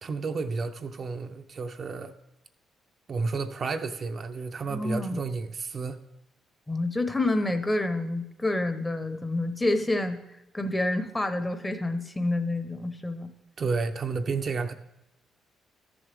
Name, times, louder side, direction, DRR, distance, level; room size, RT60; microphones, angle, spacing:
voice 1, 0.0-2.1 3.1-6.1 13.6-14.7, right 4 dB, 45° right, 7 dB, 0.5 m, -31 dB
voice 2, 4.7-5.2 6.7-10.2 10.5-13.3, left 2 dB, 15° left, 9 dB, 0.8 m, -28 dB
13.5 x 7.1 x 3.4 m, 0.89 s
cardioid pair, 90°, 0 cm